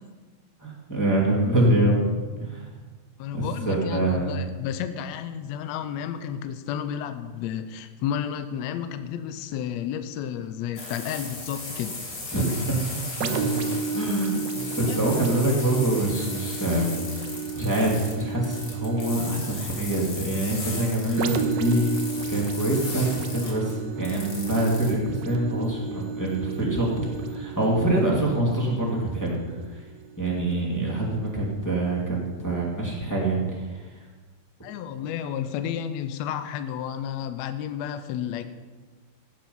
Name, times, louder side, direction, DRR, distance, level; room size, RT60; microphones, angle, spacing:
voice 1, 0.6-2.0 2.4-2.7 3.3-4.5 12.3-13.5 13.9-16.9 17.5-29.4 29.7-29.8 30.2-33.9, right 1 dB, 5° left, -5 dB, 1.7 m, -25 dB
voice 2, 3.2-12.0 14.7-15.2 34.6-38.4, left 9 dB, 85° left, 10 dB, 1.5 m, -32 dB
sound 1, 10.8-24.9, left 2 dB, 40° left, 1.6 m, -37 dB
sound 2, 13.2-30.7 31.3-31.4, right 5 dB, 80° right, 1.5 m, -34 dB
15.5 x 7.5 x 5.4 m, 1.4 s
omnidirectional pair, 3.9 m